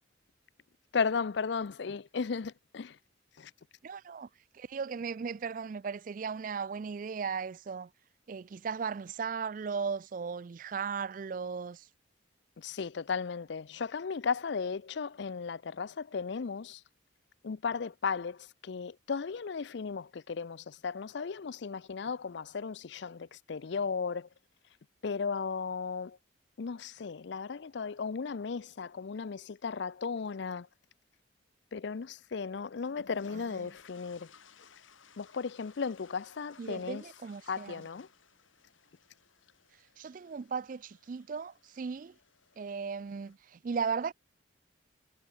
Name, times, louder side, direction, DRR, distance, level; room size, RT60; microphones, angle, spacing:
voice 1, 0.9-3.0 3.4-3.5 12.6-16.8 17.4-24.3 25.0-26.2 26.6-30.7 31.7-34.3 35.2-37.1 37.5-38.1, left 5 dB, 60° left, 0.5 m, -35 dB
voice 2, 3.8-4.3 4.5-7.9 8.3-11.9 33.3-33.4 36.6-37.8 40.0-42.2 42.6-44.1, right 5 dB, 40° right, 0.3 m, -36 dB
sound 1, 32.8-43.4, left 5 dB, 85° left, 2.6 m, -60 dB
head